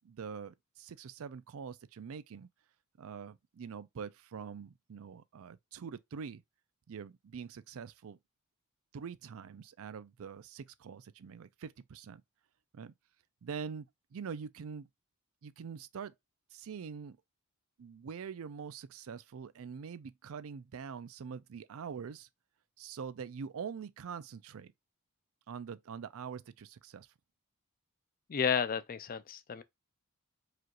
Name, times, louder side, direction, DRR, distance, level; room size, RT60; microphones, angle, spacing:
voice 1, 0.0-2.5 3.0-6.4 6.9-8.2 8.9-12.2 12.7-12.9 13.4-14.9 15.4-16.1 16.5-17.2 17.8-22.3 22.8-24.7 25.5-27.1, right 6 dB, 70° right, 0.4 m, -44 dB
voice 2, 28.3-29.6, left 7 dB, 40° left, 0.4 m, -32 dB
4.9 x 2.4 x 2.9 m
head